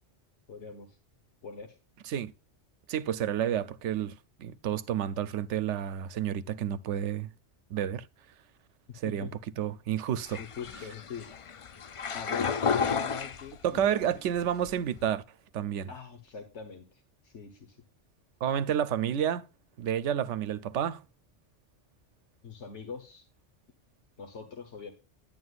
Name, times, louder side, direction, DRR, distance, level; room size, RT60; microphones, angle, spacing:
voice 1, 0.5-1.0 1.4-1.8 9.0-9.3 10.3-11.3 12.1-14.1 15.9-17.8 22.4-23.3 24.2-24.9, left 5 dB, 80° left, 1.5 m, -43 dB
voice 2, 2.9-7.3 7.7-8.1 9.0-9.3 9.6-10.4 13.6-15.2 15.5-15.9 18.4-19.5 19.8-21.0, right 9 dB, 85° right, 0.9 m, -30 dB
sound 1, 10.3-13.9 14.4-15.0, left 6 dB, 60° left, 0.3 m, -32 dB
10.5 x 9.6 x 2.4 m
omnidirectional pair, 1.2 m